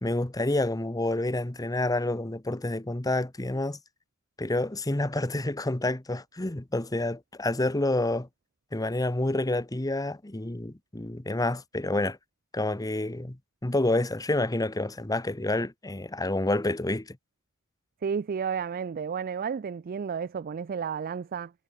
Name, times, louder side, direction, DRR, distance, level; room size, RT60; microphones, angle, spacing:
voice 1, 0.0-3.8 4.4-8.3 8.7-12.2 12.5-17.2, left 2 dB, 15° left, 1.0 m, -28 dB
voice 2, 18.0-21.5, right 6 dB, 45° right, 0.4 m, -32 dB
head